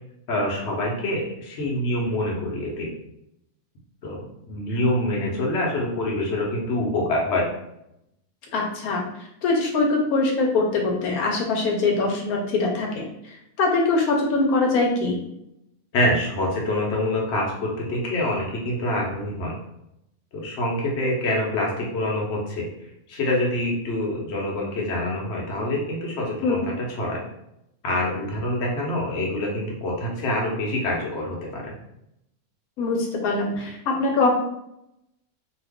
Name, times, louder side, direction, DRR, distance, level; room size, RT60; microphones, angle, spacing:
voice 1, 0.3-2.9 4.0-7.5 15.9-19.5 20.3-22.7 23.1-27.2 27.8-31.7, left 1 dB, 55° left, -2 dB, 1.0 m, -26 dB
voice 2, 8.5-15.2 26.4-26.6 32.8-34.3, left 3 dB, 90° left, 0 dB, 1.1 m, -23 dB
2.6 x 2.4 x 3.5 m, 0.81 s
omnidirectional pair, 1.5 m